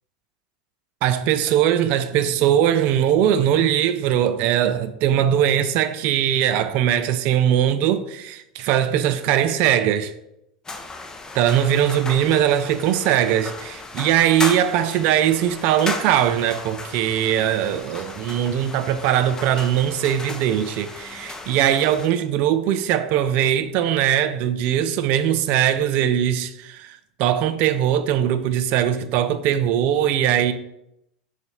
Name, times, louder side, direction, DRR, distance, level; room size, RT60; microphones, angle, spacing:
voice 1, 1.0-10.1 11.3-30.5, right 10 dB, 55° right, 0.4 m, -20 dB
sound 1, 10.6-22.1, left 3 dB, 20° left, 0.7 m, -35 dB
3.9 x 2.4 x 4.3 m
hypercardioid pair, 85°, 4 cm